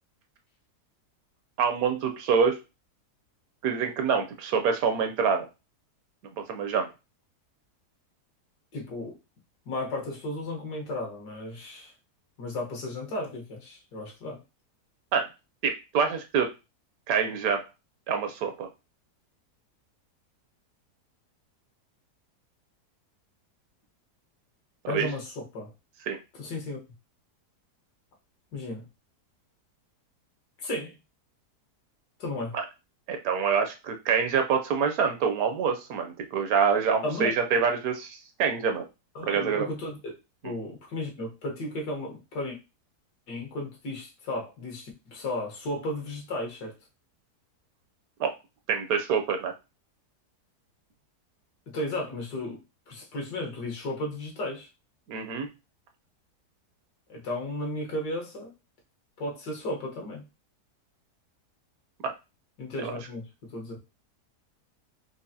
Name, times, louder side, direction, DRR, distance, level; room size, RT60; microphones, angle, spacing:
voice 1, 1.6-2.6 3.6-5.5 6.4-6.9 15.1-15.3 15.6-16.5 17.1-17.7 18.1-18.7 24.8-25.1 26.1-26.2 32.5-32.6 33.1-38.8 39.3-39.7 40.4-40.5 48.2-48.3 48.7-49.5 55.1-55.5 62.0-62.1 62.8-62.9, right 6 dB, 70° right, 6 dB, 1.0 m, -26 dB
voice 2, 8.7-9.2 9.7-11.9 12.4-14.4 24.9-25.7 26.4-26.8 28.5-28.9 30.6-31.0 32.2-32.5 37.0-37.4 39.2-40.1 40.4-42.6 43.3-46.7 51.7-52.6 52.9-54.7 57.1-58.5 59.2-60.2 62.6-63.3 63.5-63.8, left 1 dB, 80° left, 0 dB, 1.8 m, -34 dB
4.7 x 2.4 x 2.6 m, 0.27 s
omnidirectional pair, 1.7 m